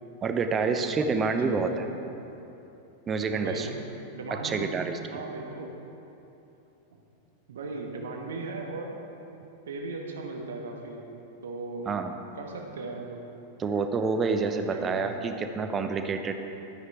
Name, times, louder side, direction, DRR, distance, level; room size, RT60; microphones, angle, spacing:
voice 1, 0.2-1.8 3.1-3.7 4.3-5.0 11.9-12.2 13.6-16.3, right 4 dB, 20° right, 7 dB, 0.8 m, -28 dB
voice 2, 1.4-1.8 3.3-3.7 4.1-4.7 5.1-5.7 7.5-8.9 9.7-11.0 11.4-11.9 12.4-13.2 14.5-15.4, right 3 dB, 65° right, 2 dB, 1.4 m, -37 dB
12.5 x 9.4 x 4.7 m, 2.9 s
figure-of-eight pair, 90°, 0 cm